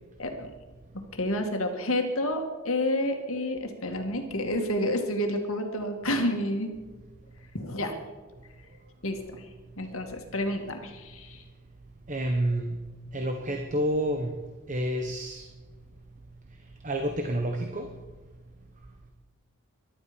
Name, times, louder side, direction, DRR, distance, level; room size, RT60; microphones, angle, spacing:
voice 1, 0.2-0.5 1.1-6.7 7.5-8.0 9.0-9.2 9.8-11.4, left 1 dB, 70° left, 4 dB, 2.3 m, -29 dB
voice 2, 12.1-12.8 13.1-14.4 14.7-15.5 16.8-17.9, right 1 dB, 35° right, 4 dB, 1.2 m, -29 dB
23.0 x 12.0 x 5.3 m, 1.3 s
head